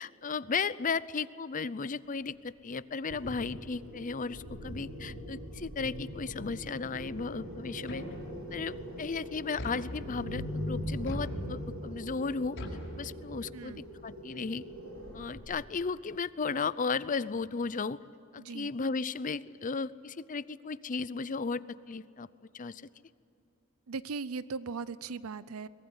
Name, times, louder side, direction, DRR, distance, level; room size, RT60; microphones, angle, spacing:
voice 1, 0.0-8.0 8.5-12.6 13.0-14.7 15.1-18.0 18.3-22.3 22.5-22.8, left 4 dB, 40° left, 17 dB, 0.6 m, -35 dB
sound 1, 3.1-15.4, equal, 65° right, 7.6 m, -41 dB
sound 2, 7.9-8.6 9.6-10.4 11.1-11.9 12.6-13.6, equal, 60° left, 5.6 m, -42 dB
voice 2, 13.5-13.9 18.4-18.7 23.9-25.7, right 4 dB, 85° right, 17 dB, 0.6 m, -38 dB
23.0 x 21.0 x 9.7 m, 2.8 s
head